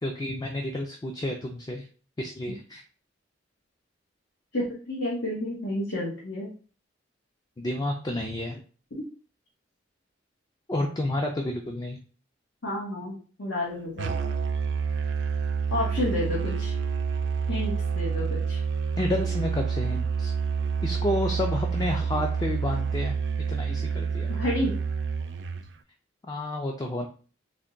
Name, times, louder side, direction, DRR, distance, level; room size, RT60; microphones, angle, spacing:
voice 1, 0.0-1.9 2.2-2.8 7.6-8.6 10.7-12.0 19.0-20.3 20.8-23.2 23.5-24.4 26.3-27.1, left 1 dB, 20° left, 2 dB, 0.3 m, -30 dB
voice 2, 4.5-6.5 12.6-14.1 15.7-16.7 17.5-18.6 24.3-24.7, left 1 dB, 90° left, -5 dB, 1.0 m, -30 dB
Musical instrument, 14.0-25.7, right 6 dB, 65° right, 0.3 m, -28 dB
3.4 x 2.2 x 3.7 m, 0.40 s
head